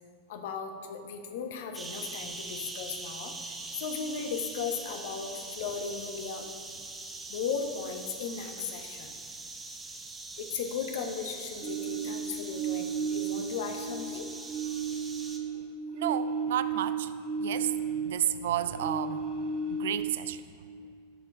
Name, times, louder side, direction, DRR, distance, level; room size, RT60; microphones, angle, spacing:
voice 1, 0.3-6.8 7.3-9.1 10.4-14.3 17.5-17.6, left 6 dB, 60° left, 5 dB, 0.9 m, -36 dB
sound 1, 1.7-15.4, right 3 dB, 15° right, 1.0 m, -43 dB
sound 2, 11.6-14.1 14.4-18.3 18.7-20.4, right 5 dB, 45° right, 0.9 m, -33 dB
voice 2, 15.9-17.1 17.4-20.4, right 11 dB, 65° right, 13 dB, 0.3 m, -32 dB
12.5 x 4.6 x 4.8 m, 2.2 s
figure-of-eight pair, 90°, 0 cm